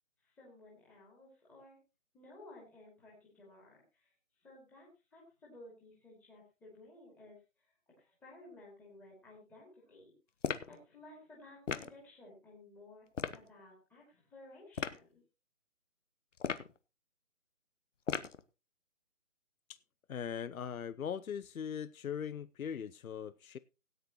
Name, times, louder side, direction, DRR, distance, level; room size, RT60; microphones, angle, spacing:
voice 1, 0.2-1.8 2.1-4.1 4.4-10.1 10.7-13.1 13.3-15.2, left 2 dB, 5° left, 2.4 m, -56 dB
sound 1, 10.4-10.8 11.7-12.0 13.1-13.4 14.7-15.0 16.4-16.8 18.1-18.4, left 6 dB, 60° left, 1.1 m, -36 dB
voice 2, 20.1-23.6, left 8 dB, 85° left, 0.7 m, -40 dB
17.5 x 9.6 x 3.0 m
hypercardioid pair, 165°, 41 cm